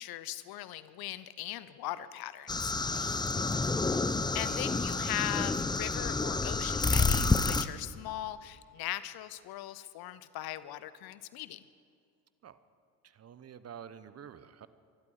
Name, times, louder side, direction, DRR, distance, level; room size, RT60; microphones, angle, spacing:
voice 1, 0.0-3.3 4.3-11.6, left 14 dB, 55° left, 15 dB, 0.8 m, -39 dB
sound 1, 2.5-7.6, left 3 dB, 10° left, 0.7 m, -29 dB
voice 2, 13.1-14.7, right 8 dB, 35° right, 14 dB, 0.9 m, -49 dB
24.0 x 12.0 x 4.9 m, 2.4 s
hypercardioid pair, 65°, 45 cm